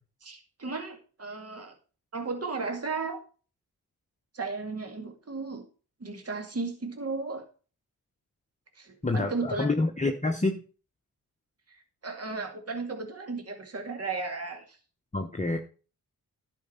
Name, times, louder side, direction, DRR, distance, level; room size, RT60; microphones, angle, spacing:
voice 1, 0.2-1.7 2.1-3.2 4.3-5.7 6.0-7.4 8.8-9.7 11.7-14.8, right 3 dB, 40° right, 4 dB, 2.2 m, -35 dB
voice 2, 9.0-10.6 15.1-15.6, left 2 dB, 20° left, 4 dB, 1.0 m, -27 dB
11.0 x 5.4 x 5.7 m, 0.38 s
supercardioid pair, 50°, 39 cm